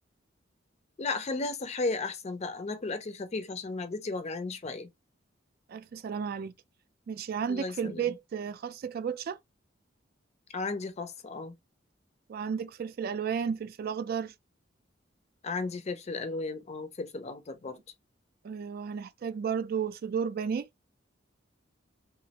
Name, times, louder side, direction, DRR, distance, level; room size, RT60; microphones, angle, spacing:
voice 1, 1.0-4.9 7.5-8.2 10.5-11.5 15.4-17.8, left 3 dB, 35° left, 0.4 m, -34 dB
voice 2, 5.7-6.5 7.1-9.4 12.3-14.3 18.4-20.7, right 7 dB, 55° right, 0.3 m, -33 dB
3.0 x 2.4 x 2.8 m
head